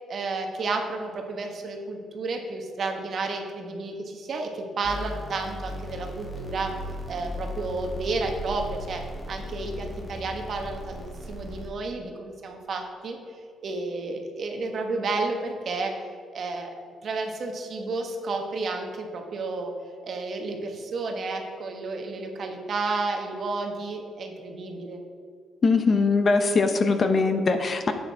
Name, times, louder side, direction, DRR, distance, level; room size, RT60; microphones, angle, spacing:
voice 1, 0.1-6.7 7.1-9.0 9.3-13.2 13.6-15.9 16.3-16.7 17.0-19.7 20.0-25.0, right 3 dB, 55° right, 3 dB, 1.3 m, -31 dB
sound 1, 4.8-11.7, left 1 dB, 20° left, 2.0 m, -37 dB
voice 2, 25.6-27.9, left 4 dB, 40° left, 7 dB, 0.9 m, -21 dB
9.9 x 8.3 x 3.5 m, 2.2 s
cardioid pair, 90°, 0 cm